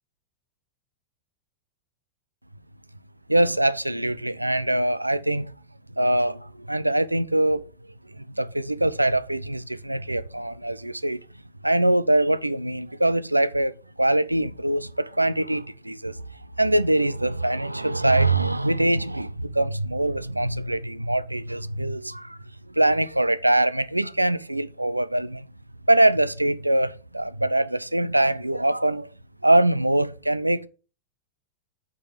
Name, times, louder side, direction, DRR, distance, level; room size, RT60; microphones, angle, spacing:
voice 1, 3.3-5.5 6.0-7.7 8.2-11.2 11.6-16.2 16.6-22.4 22.7-25.4 25.9-29.1 29.4-30.7, right 1 dB, 85° right, 0.5 m, -23 dB
8.4 x 5.1 x 5.6 m
figure-of-eight pair, 90°, 0 cm